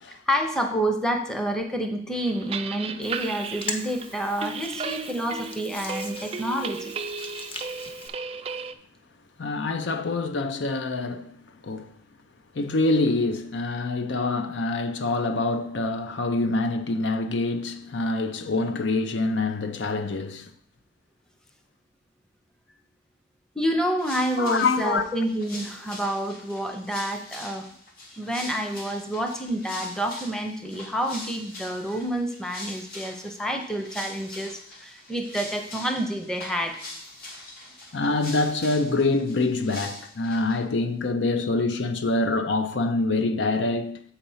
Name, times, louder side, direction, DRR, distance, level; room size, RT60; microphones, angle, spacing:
voice 1, 0.1-6.9 23.5-27.7 28.2-36.8, right 1 dB, 5° left, 0.7 m, -28 dB
sound 1, 2.1-8.7, right 5 dB, 30° right, 0.3 m, -35 dB
Hands, 3.0-8.1, left 3 dB, 30° left, 0.8 m, -40 dB
voice 2, 9.4-11.4 11.6-12.0 12.5-20.5 24.4-25.1 37.9-44.0, left 3 dB, 75° left, 0.6 m, -25 dB
sound 2, 24.0-40.6, left 2 dB, 50° left, 1.8 m, -42 dB
7.7 x 4.3 x 5.5 m
head